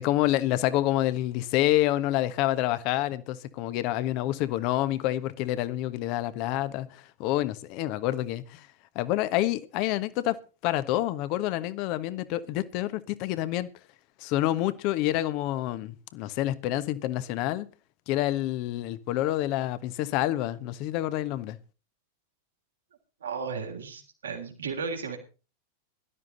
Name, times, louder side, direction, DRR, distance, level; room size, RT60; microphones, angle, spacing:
voice 1, 0.0-8.7 8.9-10.4 10.6-13.7 14.2-17.7 18.1-21.6, left 14 dB, 45° left, 1.2 m, -28 dB
voice 2, 23.2-25.2, right 5 dB, 70° right, 3.4 m, -34 dB
17.0 x 12.5 x 4.0 m
figure-of-eight pair, 90°, 0 cm